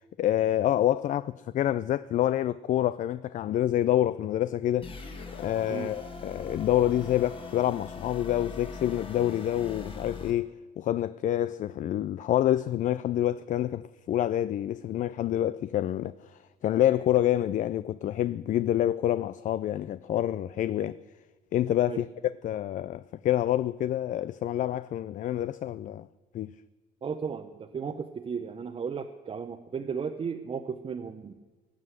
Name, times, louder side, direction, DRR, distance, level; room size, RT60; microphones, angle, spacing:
voice 1, 0.0-4.9 5.4-16.1 16.6-21.0 21.5-22.1 22.4-26.1 26.3-26.5, left 12 dB, 50° left, 0.4 m, -27 dB
sound 1, 4.8-10.3, left 4 dB, 30° left, 1.9 m, -41 dB
voice 2, 27.0-31.3, right 6 dB, 35° right, 0.8 m, -35 dB
18.5 x 7.6 x 7.9 m
cardioid pair, 110°, 17 cm